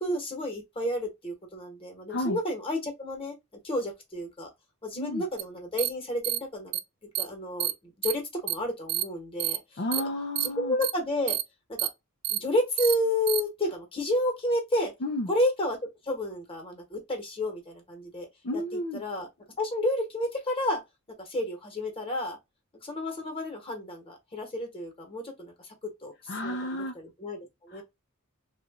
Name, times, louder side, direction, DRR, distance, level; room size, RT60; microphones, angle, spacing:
voice 1, 0.0-3.3 3.6-4.5 4.8-6.7 7.2-9.8 10.4-11.4 11.7-11.9 12.3-14.9 15.3-15.8 16.0-18.3 18.5-19.3 19.6-20.8 21.2-22.4 22.8-25.7 26.0-27.8, left 1 dB, 25° left, 1.2 m, -31 dB
sound 1, 5.4-5.5 5.8-5.9 6.2-6.4 6.7-6.8 7.2-7.3 7.6-7.7 8.0-8.1 8.5-8.6 8.9-9.0 9.4-9.6 9.9-10.0 10.4-10.5 10.8-10.9 11.3-11.4 11.8-11.9 12.2-12.4 12.8-12.9 13.3-13.4, right 13 dB, 90° right, 0.5 m, -27 dB
voice 2, 9.8-10.8 15.0-15.3 18.4-19.0 26.3-26.9 27.7-27.8, left 1 dB, 50° left, 0.6 m, -32 dB
3.0 x 2.5 x 3.5 m
head